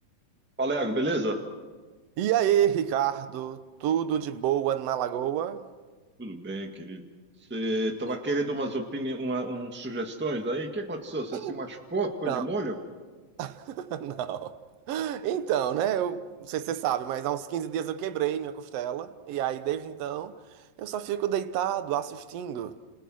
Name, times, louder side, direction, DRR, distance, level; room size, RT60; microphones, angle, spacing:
voice 1, 0.6-1.4 6.2-7.0 7.5-12.7, right 1 dB, 15° right, 0.4 m, -30 dB
voice 2, 2.2-5.7 8.1-8.2 11.3-11.6 12.3-12.4 13.4-14.6 14.9-20.4 20.8-22.8, right 10 dB, 75° right, 1.5 m, -29 dB
30.0 x 28.5 x 6.3 m
omnidirectional pair, 4.1 m